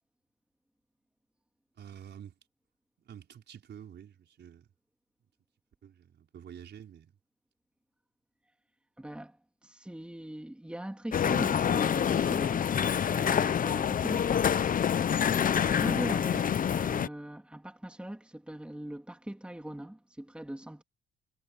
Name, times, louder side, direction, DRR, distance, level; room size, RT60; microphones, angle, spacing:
voice 1, 1.8-2.4 3.0-4.7 5.8-7.1, right 9 dB, 60° right, 5.1 m, -49 dB
voice 2, 9.0-20.8, right 1 dB, 5° right, 2.8 m, -41 dB
sound 1, 11.1-17.1, left 8 dB, 45° left, 0.7 m, -27 dB
cardioid pair, 90°, 20 cm